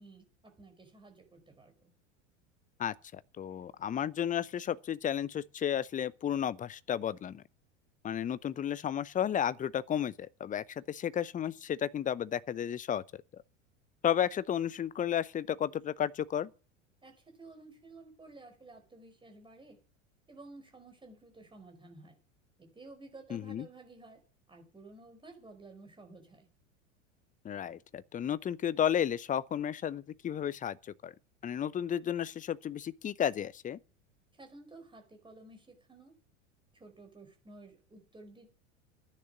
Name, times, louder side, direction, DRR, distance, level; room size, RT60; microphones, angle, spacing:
voice 1, 0.0-1.9 17.0-19.8 20.3-22.2 22.6-24.2 24.5-26.5 34.3-36.2 36.7-38.6, right 2 dB, 10° right, 4.9 m, -53 dB
voice 2, 2.8-7.4 8.0-13.0 14.0-16.5 23.3-23.7 27.4-31.1 31.4-33.8, left 9 dB, 20° left, 0.7 m, -33 dB
11.5 x 10.0 x 9.8 m
figure-of-eight pair, 85°, 39 cm